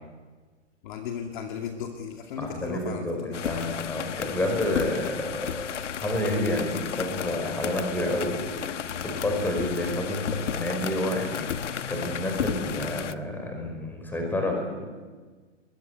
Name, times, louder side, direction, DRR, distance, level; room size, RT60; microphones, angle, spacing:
voice 1, 0.8-3.8, left 7 dB, 40° left, 4 dB, 2.4 m, -36 dB
voice 2, 2.4-5.7 6.0-14.9, left 1 dB, 5° left, 3 dB, 5.1 m, -29 dB
sound 1, 3.3-13.1, left 8 dB, 75° left, 1.3 m, -33 dB
23.5 x 22.0 x 9.6 m, 1.4 s
hypercardioid pair, 155°, 37 cm